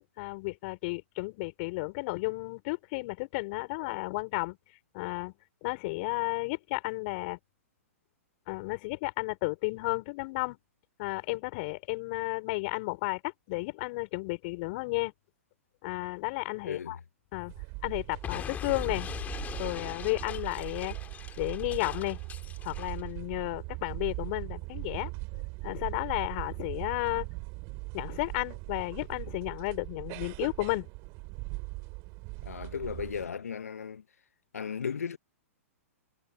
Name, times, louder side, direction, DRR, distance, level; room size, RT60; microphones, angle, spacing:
voice 1, 0.2-4.6 4.9-5.3 5.6-7.4 8.5-10.6 11.0-15.1 15.8-17.0 17.3-17.5 17.8-19.1 19.6-21.0 21.4-22.2 22.6-25.1 25.6-27.3 27.9-30.9, left 26 dB, 45° left, 5.1 m, -33 dB
voice 2, 16.6-17.0 32.4-34.0 34.5-35.2, left 7 dB, 80° left, 1.6 m, -36 dB
sound 1, 17.5-33.3, right 29 dB, 40° right, 3.4 m, -40 dB
Explosion, 18.2-23.0, left 8 dB, 20° left, 2.9 m, -40 dB
hypercardioid pair, 120°, 8 cm